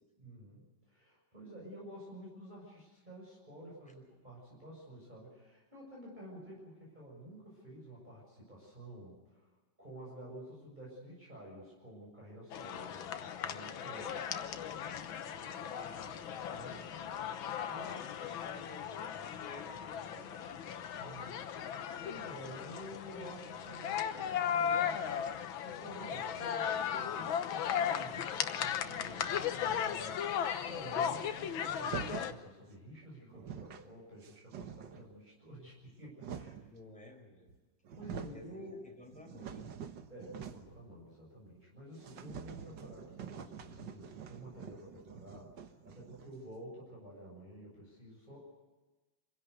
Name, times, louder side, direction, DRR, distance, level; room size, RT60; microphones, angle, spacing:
voice 1, 0.2-9.5 9.8-14.3 16.5-16.9 17.7-18.0 20.9-21.7 22.0-36.6 38.0-38.9 40.1-48.4, equal, 20° right, -5 dB, 7.1 m, -51 dB
sound 1, 12.5-32.3, left 8 dB, 90° left, 1.8 m, -37 dB
voice 2, 15.3-16.6 17.7-20.7 36.7-37.5 38.3-39.7, left 2 dB, 5° left, 2 dB, 4.9 m, -54 dB
sound 2, 31.8-32.4 33.0-33.1 33.3-33.9 34.2-35.1 35.8-36.7 37.5-37.6 37.8-38.5 38.9-40.8 41.1-41.2 41.5-41.6 42.0-46.5, right 7 dB, 65° right, 1.8 m, -46 dB
27.0 x 16.5 x 8.1 m, 1.2 s
omnidirectional pair, 2.1 m